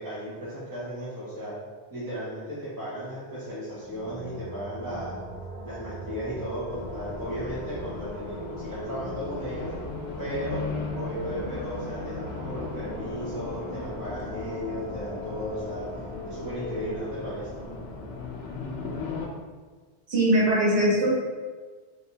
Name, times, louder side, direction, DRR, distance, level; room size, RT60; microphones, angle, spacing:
voice 1, 0.0-1.6 1.9-5.2 5.6-9.7 10.2-10.6 10.9-15.9 16.3-17.5, equal, 25° right, -10 dB, 0.7 m, -35 dB
sound 1, 3.7-19.2, left 1 dB, 50° right, 0.9 m, -41 dB
Race car auto racing, 6.7-19.3, left 4 dB, 70° left, 0.8 m, -37 dB
voice 2, 20.1-21.1, right 1 dB, 75° right, -7 dB, 1.4 m, -21 dB
3.4 x 2.6 x 2.8 m, 1.4 s
omnidirectional pair, 1.1 m